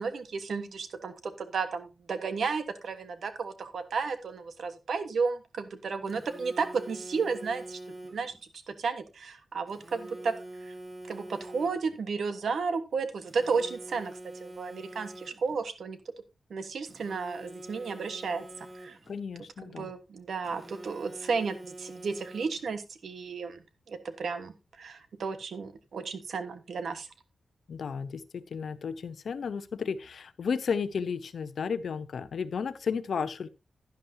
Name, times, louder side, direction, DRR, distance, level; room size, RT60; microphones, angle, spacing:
voice 1, 0.0-7.8 8.1-8.3 8.7-10.3 10.6-10.7 11.1-14.1 14.4-16.0 16.5-19.0 19.6-23.6 23.9-27.1, right 5 dB, 75° right, 10 dB, 1.2 m, -33 dB
Telephone, 6.1-8.4 9.7-12.0 13.3-15.6 16.9-19.2 20.4-22.8, right 1 dB, 25° right, 1.8 m, -45 dB
voice 2, 19.1-19.9 27.7-33.5, left 6 dB, 70° left, 13 dB, 0.7 m, -33 dB
11.0 x 10.5 x 2.7 m, 0.26 s
wide cardioid pair, 135°, 0 cm